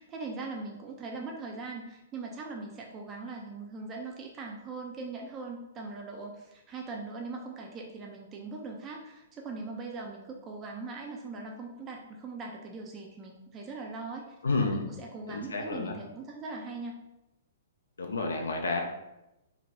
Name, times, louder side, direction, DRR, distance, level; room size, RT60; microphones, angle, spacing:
voice 1, 0.0-17.0, right 3 dB, 25° right, 0 dB, 0.4 m, -40 dB
voice 2, 14.4-14.9 15.3-16.0 18.0-18.8, left 3 dB, 75° left, 3 dB, 0.4 m, -30 dB
2.6 x 2.1 x 2.9 m, 0.92 s
figure-of-eight pair, 115°, 0 cm